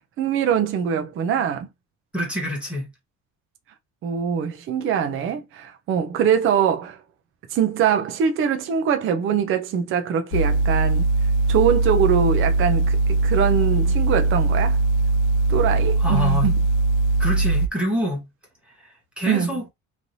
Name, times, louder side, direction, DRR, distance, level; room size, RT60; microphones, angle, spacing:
voice 1, 0.2-1.7 4.0-7.0 7.5-11.1 11.5-14.8 15.5-16.6 19.3-19.5, right 8 dB, 45° right, 0.5 m, -23 dB
voice 2, 2.1-2.9 16.0-16.5 17.2-18.3 19.2-19.6, equal, 5° right, 1.4 m, -26 dB
sound 1, 10.3-17.7, right 3 dB, 75° left, 0.6 m, -20 dB
3.2 x 2.6 x 2.6 m
cardioid pair, 145°, 31 cm